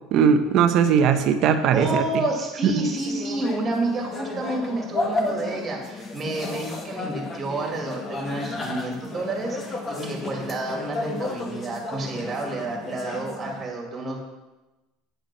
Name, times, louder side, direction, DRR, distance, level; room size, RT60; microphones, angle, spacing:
voice 1, 0.1-2.0 2.6-2.7, right 7 dB, 50° right, 8 dB, 0.8 m, -19 dB
voice 2, 1.7-14.2, right 2 dB, 25° right, 0 dB, 2.2 m, -29 dB
sound 1, 2.8-13.6, left 2 dB, 30° left, 1.3 m, -33 dB
8.7 x 5.3 x 5.5 m, 1.1 s
supercardioid pair, 130°, 0 cm